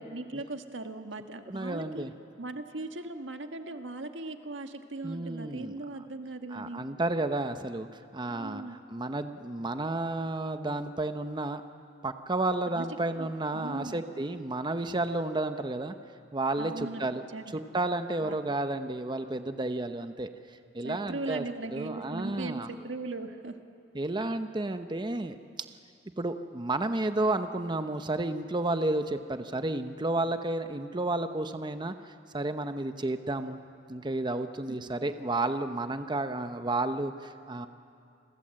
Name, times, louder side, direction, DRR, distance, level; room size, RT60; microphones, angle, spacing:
voice 1, 0.0-2.0 2.4-6.8 8.3-8.8 12.7-12.8 13.2-13.3 13.5-14.0 16.6-17.6 18.2-18.5 20.8-23.6 34.7-35.1, right 2 dB, 85° right, 7 dB, 1.6 m, -39 dB
voice 2, 1.5-2.1 5.0-5.8 6.5-8.6 8.9-11.6 12.0-15.9 16.3-17.2 17.5-21.4 21.7-22.7 23.9-25.4 26.2-33.6 33.9-37.7, right 2 dB, 25° right, 9 dB, 0.8 m, -31 dB
29.5 x 22.0 x 7.7 m, 2.5 s
head